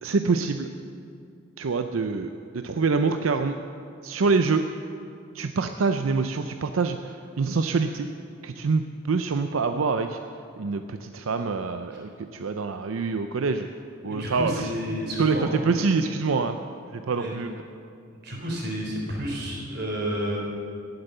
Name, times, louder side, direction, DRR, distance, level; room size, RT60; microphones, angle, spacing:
voice 1, 0.0-0.7 1.6-3.5 4.0-4.7 5.3-8.1 8.4-10.2 10.6-13.7 14.0-14.7 15.2-16.6 16.9-17.5, right 4 dB, 90° right, 7 dB, 0.5 m, -25 dB
voice 2, 14.0-15.8 17.2-17.3 18.2-20.4, equal, 50° right, -1 dB, 3.5 m, -30 dB
18.0 x 8.1 x 6.7 m, 2.4 s
head